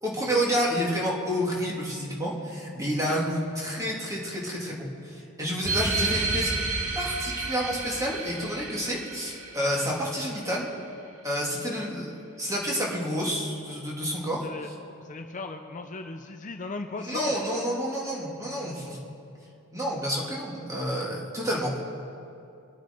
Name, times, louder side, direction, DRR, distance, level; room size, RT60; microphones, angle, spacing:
voice 1, 0.0-6.5 6.9-10.7 11.2-14.4 17.0-19.0 19.7-21.7, equal, 15° right, -3 dB, 2.4 m, -29 dB
sound 1, 5.6-10.7, right 3 dB, 80° right, 1.7 m, -31 dB
voice 2, 14.3-14.7 15.0-17.3, left 3 dB, 35° left, 5 dB, 0.6 m, -36 dB
23.5 x 9.0 x 4.5 m, 2.7 s
head